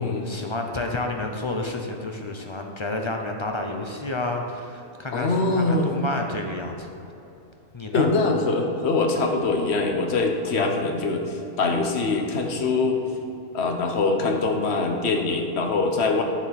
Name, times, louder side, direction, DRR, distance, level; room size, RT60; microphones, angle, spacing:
voice 1, 0.0-6.9 7.7-8.1 10.6-10.7, left 2 dB, 35° left, 2 dB, 0.5 m, -30 dB
voice 2, 5.1-5.9 7.9-13.0 13.5-16.2, left 3 dB, 55° left, 3 dB, 1.2 m, -23 dB
9.3 x 7.0 x 4.2 m, 2.9 s
omnidirectional pair, 1.4 m